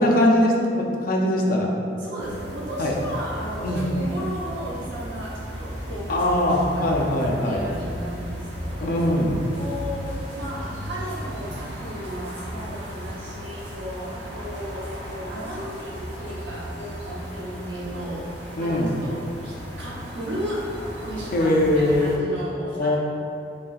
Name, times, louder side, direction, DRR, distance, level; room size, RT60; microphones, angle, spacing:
voice 1, 0.0-1.7 2.8-2.9 3.6-3.9 6.1-7.6 8.8-9.3 18.6-18.9 21.3-22.4 22.7-23.0, left 1 dB, 50° left, -1 dB, 0.5 m, -21 dB
voice 2, 2.0-6.2 6.7-7.0 7.4-9.0 9.6-20.6 21.0-21.5 21.8-23.0, equal, 80° right, -7 dB, 0.9 m, -35 dB
sound 1, 2.2-22.2, equal, 65° right, 1.1 m, -36 dB
5.6 x 2.4 x 2.4 m, 2.5 s
head